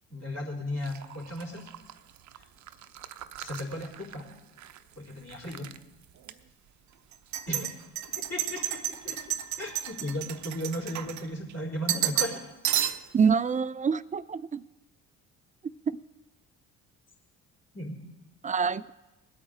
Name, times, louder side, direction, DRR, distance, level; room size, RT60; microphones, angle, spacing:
voice 1, 0.1-1.7 2.3-2.4 3.4-4.3 5.0-5.7 7.5-7.7 8.3-9.2 9.6-12.4 17.7-18.0, left 1 dB, 40° left, -3 dB, 3.8 m, -35 dB
sound 1, 0.8-4.8 5.1-5.8 6.2-6.3 7.1-11.5 11.9-12.4 12.6-13.2, right 11 dB, 50° right, 0.7 m, -33 dB
voice 2, 13.1-14.6 18.4-18.9, right 6 dB, 20° right, 17 dB, 0.4 m, -26 dB
20.0 x 8.6 x 3.8 m, 1.0 s
hypercardioid pair, 50°, 37 cm